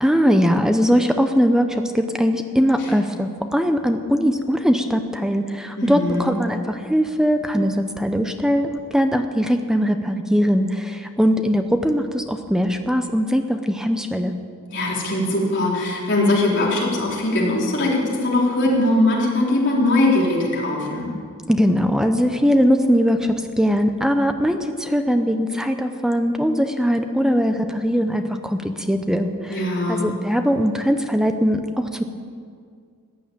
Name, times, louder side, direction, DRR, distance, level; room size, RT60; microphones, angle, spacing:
voice 1, 0.0-14.3 21.5-29.6 29.9-32.0, equal, 5° right, 7 dB, 0.7 m, -20 dB
voice 2, 5.8-6.3 14.7-21.1 29.5-30.1, left 2 dB, 50° left, -4 dB, 3.9 m, -21 dB
15.0 x 9.9 x 8.8 m, 2.2 s
head